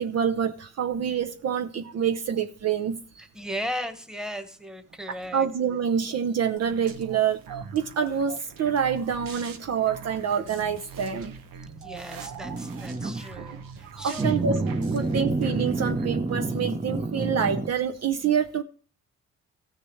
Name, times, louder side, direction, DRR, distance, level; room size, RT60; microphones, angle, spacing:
voice 1, 0.0-3.0 5.3-7.4 7.7-11.4 13.4-13.5 13.8-14.6 14.9-18.6, right 7 dB, 50° right, 0.7 m, -26 dB
voice 2, 3.2-5.5 11.8-14.4 15.2-15.3, equal, ahead, 1.3 m, -36 dB
sound 1, 6.6-16.2, right 6 dB, 85° right, 1.3 m, -42 dB
sound 2, 12.4-13.3 14.2-17.7, right 3 dB, 20° right, 0.8 m, -28 dB
15.0 x 6.6 x 3.2 m
cardioid pair, 80°, 33 cm